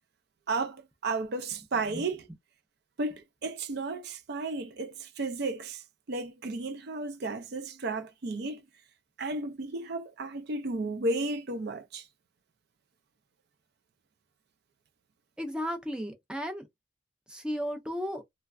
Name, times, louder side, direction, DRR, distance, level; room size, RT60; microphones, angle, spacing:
voice 1, 0.5-2.3 3.0-8.6 9.2-12.1, right 3 dB, 55° right, 0.5 m, -33 dB
voice 2, 15.4-16.7 17.3-18.2, equal, 5° right, 0.5 m, -34 dB
3.1 x 2.3 x 2.3 m
head